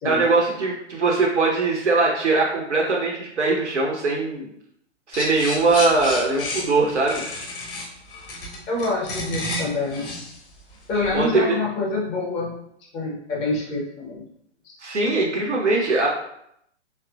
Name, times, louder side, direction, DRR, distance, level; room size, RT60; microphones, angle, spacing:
voice 1, 0.0-4.5 5.1-7.2 11.1-11.6 14.8-16.1, right 3 dB, 75° right, -2 dB, 0.9 m, -21 dB
sound 1, 5.1-11.3, left 1 dB, 50° left, 1.2 m, -31 dB
voice 2, 8.7-10.1 10.9-12.5 12.9-14.2 14.6-14.7, left 2 dB, 20° left, -3 dB, 0.6 m, -26 dB
4.6 x 3.0 x 2.4 m, 0.74 s
figure-of-eight pair, 115°, 35 cm